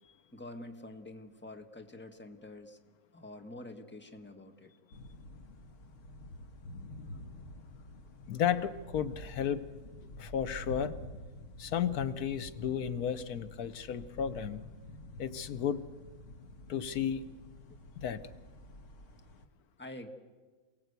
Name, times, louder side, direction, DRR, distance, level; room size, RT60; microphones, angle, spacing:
voice 1, 0.3-2.8 3.1-4.7 17.7-17.8 19.8-20.1, left 2 dB, 10° left, 5 dB, 1.5 m, -47 dB
sound 1, 4.9-19.5, left 1 dB, 60° left, 1.6 m, -48 dB
voice 2, 8.3-9.7 10.2-11.0 11.6-14.7 15.2-15.8 16.7-17.2 18.0-18.3, left 8 dB, 90° left, 13 dB, 1.4 m, -33 dB
27.5 x 18.5 x 8.2 m, 1.4 s
omnidirectional pair, 1.5 m